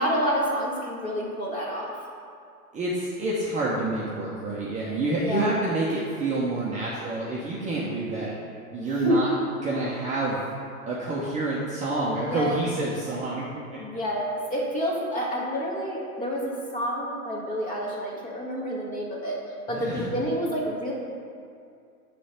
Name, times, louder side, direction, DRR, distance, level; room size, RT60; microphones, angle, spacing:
voice 1, 0.0-1.9 5.2-5.5 8.8-9.2 12.1-12.6 13.8-19.4 19.7-20.9, equal, 20° left, -4 dB, 1.7 m, -28 dB
voice 2, 2.7-8.3 8.7-9.3 9.6-10.4 10.9-13.6 19.7-20.1, right 2 dB, 15° right, -6 dB, 0.9 m, -28 dB
9.6 x 3.4 x 5.7 m, 2.4 s
hypercardioid pair, 125°, 45 cm